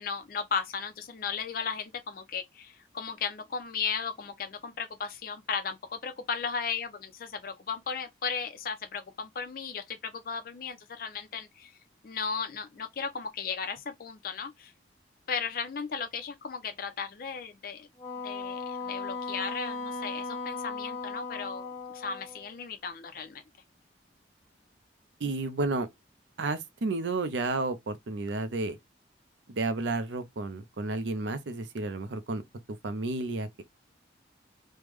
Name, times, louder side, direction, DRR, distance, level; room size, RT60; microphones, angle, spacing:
voice 1, 0.0-11.7 12.0-14.7 15.3-17.9 18.2-23.4, left 6 dB, 50° left, 0.4 m, -35 dB
Wind instrument woodwind instrument, 18.0-22.5, left 3 dB, 15° left, 0.6 m, -37 dB
voice 2, 25.2-25.9 26.4-28.8 29.5-33.6, right 3 dB, 80° right, 0.5 m, -32 dB
3.2 x 2.1 x 3.2 m
head